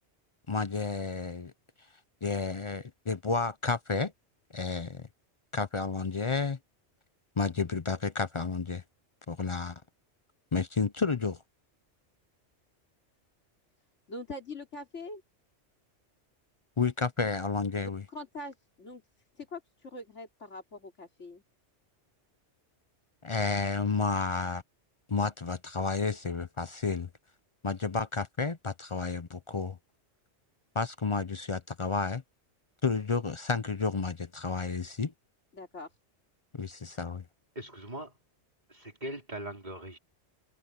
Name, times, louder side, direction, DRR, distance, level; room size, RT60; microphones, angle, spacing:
voice 1, 0.5-1.5 2.2-4.1 4.5-5.1 5.5-6.6 7.4-8.8 9.3-9.8 10.5-11.4 16.8-18.0 23.2-24.6 25.1-27.1 27.6-29.8 30.8-32.2 32.8-35.1 36.5-37.2, left 4 dB, 35° left, 0.5 m, -31 dB
voice 2, 14.1-15.2 17.8-19.0 19.4-21.4 35.5-36.0, left 2 dB, 85° left, 3.7 m, -43 dB
voice 3, 37.6-38.2 38.7-40.0, right 1 dB, 40° right, 4.1 m, -40 dB
omnidirectional pair, 1.2 m